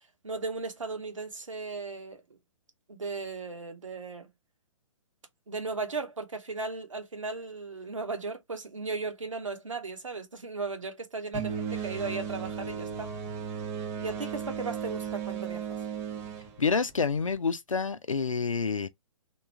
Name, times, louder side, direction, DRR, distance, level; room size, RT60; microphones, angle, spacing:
voice 1, 0.2-2.2 2.9-4.3 5.5-13.1 14.0-15.8, right 4 dB, 70° right, 1.2 m, -36 dB
sound 1, 11.3-17.4, right 7 dB, 15° right, 0.4 m, -36 dB
voice 2, 16.6-18.9, left 5 dB, 80° left, 0.5 m, -28 dB
3.0 x 2.4 x 4.3 m
figure-of-eight pair, 125°, 17 cm